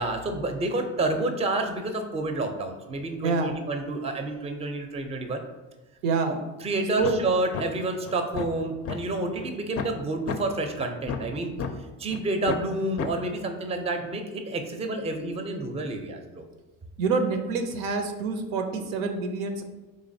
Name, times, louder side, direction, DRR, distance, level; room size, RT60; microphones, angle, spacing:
voice 1, 0.0-5.4 6.6-11.5 12.0-16.4, right 2 dB, 15° right, 6 dB, 0.4 m, -29 dB
voice 2, 3.2-3.6 6.0-6.4 6.9-7.2 17.0-19.6, right 4 dB, 85° right, 6 dB, 0.6 m, -27 dB
sound 1, 7.0-7.2 7.5-7.6 8.1-9.0 9.4-9.5 9.8-9.9 10.3-10.4 10.8-11.7 12.1-12.2 12.5-12.7 13.0-13.1, left 6 dB, 40° left, 0.4 m, -31 dB
3.8 x 3.1 x 2.6 m, 1.2 s
supercardioid pair, 75°, 38 cm